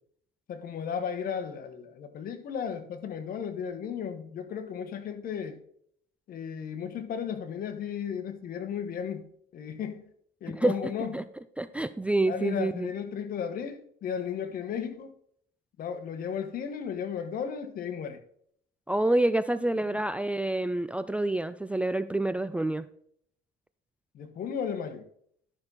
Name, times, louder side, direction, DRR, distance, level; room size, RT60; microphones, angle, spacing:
voice 1, 0.5-5.6 6.3-10.0 10.4-11.1 12.3-15.1 15.8-18.2 19.8-19.9 24.1-25.0, left 7 dB, 60° left, 1.3 m, -35 dB
voice 2, 10.5-10.8 11.1-11.2 11.6-12.9 18.9-22.9, right 1 dB, 5° right, 0.4 m, -27 dB
12.0 x 6.2 x 4.1 m
cardioid pair, 110°, 17 cm